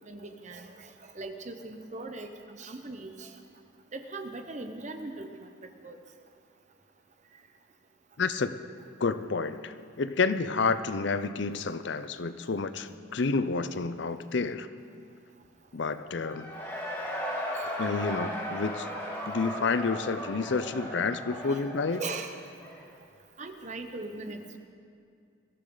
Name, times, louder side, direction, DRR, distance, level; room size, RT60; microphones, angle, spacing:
voice 1, 0.0-3.4 3.9-5.5 5.8-6.0 17.5-17.7 21.3-22.4 23.4-24.6, right 3 dB, 35° right, 6 dB, 1.0 m, -40 dB
voice 2, 8.2-8.6 9.0-14.7 15.7-16.6 17.8-18.9 19.3-22.0, left 4 dB, 60° left, 12 dB, 0.6 m, -29 dB
Cheering / Crowd, 16.2-22.9, equal, 10° left, 2.6 m, -36 dB
22.0 x 14.0 x 3.9 m, 2.3 s
head